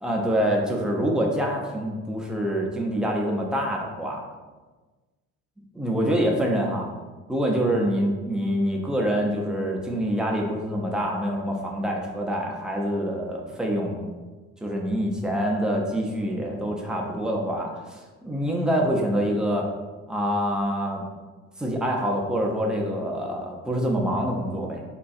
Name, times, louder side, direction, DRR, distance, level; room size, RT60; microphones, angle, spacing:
voice 1, 0.0-4.3 5.7-6.9 7.3-14.1 14.6-19.7 20.1-21.0 21.6-24.8, equal, ahead, -1 dB, 0.3 m, -26 dB
3.6 x 2.2 x 2.5 m, 1.3 s
figure-of-eight pair, 55°, 42 cm